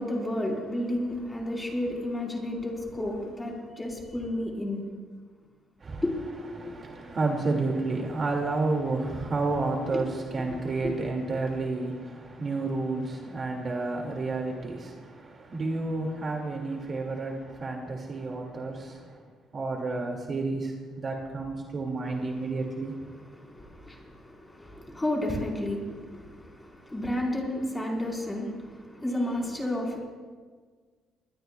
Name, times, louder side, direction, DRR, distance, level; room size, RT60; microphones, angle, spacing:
voice 1, 0.0-4.8 6.0-6.2 6.7-6.8 9.9-10.0 10.8-10.9 23.4-30.0, left 1 dB, 10° left, -1 dB, 4.1 m, -32 dB
voice 2, 6.5-19.2 19.5-22.9, right 3 dB, 35° right, 1 dB, 2.1 m, -31 dB
23.5 x 20.0 x 2.3 m, 1.5 s
cardioid pair, 130°, 0 cm